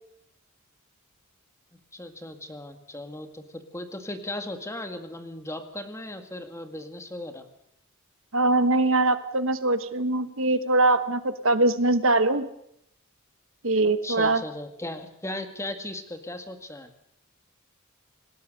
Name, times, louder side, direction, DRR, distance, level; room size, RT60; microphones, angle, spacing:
voice 1, 1.9-7.5 14.0-16.9, left 1 dB, 15° left, 7 dB, 1.9 m, -37 dB
voice 2, 8.3-12.5 13.6-14.4, right 2 dB, 65° right, 11 dB, 1.3 m, -22 dB
28.0 x 19.0 x 6.6 m, 0.73 s
head